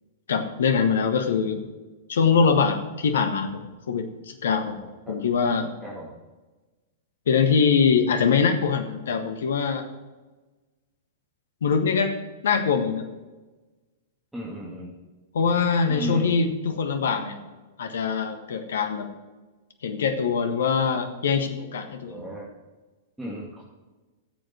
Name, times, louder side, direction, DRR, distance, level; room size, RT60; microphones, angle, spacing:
voice 1, 0.3-1.6 2.1-4.8 5.1-5.7 7.3-9.9 11.6-12.1 12.4-13.0 15.3-17.4 17.8-19.1 19.8-22.3, left 5 dB, 65° left, 7 dB, 1.5 m, -23 dB
voice 2, 4.8-5.2 5.8-6.2 14.3-15.0 15.9-16.3 22.1-22.5 23.2-23.6, equal, 5° right, -6 dB, 2.4 m, -35 dB
14.0 x 7.8 x 4.5 m, 1.2 s
figure-of-eight pair, 100°, 0 cm